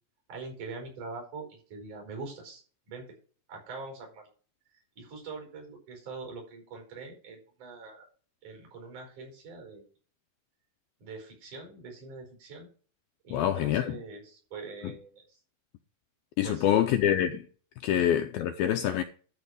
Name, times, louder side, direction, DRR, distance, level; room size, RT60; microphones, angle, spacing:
voice 1, 0.3-2.6 2.9-3.0 3.5-4.2 5.0-8.1 8.4-9.9 11.0-12.7 13.2-15.2 16.4-16.9 17.9-18.1, right 4 dB, 45° right, 6.1 m, -43 dB
voice 2, 13.3-14.0 14.8-14.9 16.4-17.5 17.8-19.0, left 11 dB, 80° left, 2.2 m, -26 dB
13.0 x 5.1 x 6.4 m
omnidirectional pair, 4.9 m